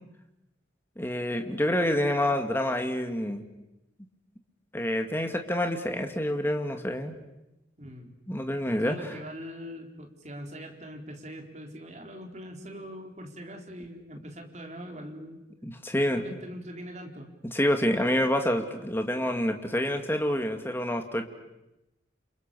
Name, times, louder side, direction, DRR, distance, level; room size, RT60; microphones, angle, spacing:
voice 1, 1.0-3.4 4.7-7.1 8.3-9.2 15.6-16.2 17.5-21.3, left 1 dB, 10° left, 5 dB, 2.3 m, -27 dB
voice 2, 7.8-8.1 8.8-15.4 16.1-17.3, equal, 40° right, 2 dB, 3.9 m, -42 dB
29.5 x 27.5 x 7.0 m, 0.93 s
head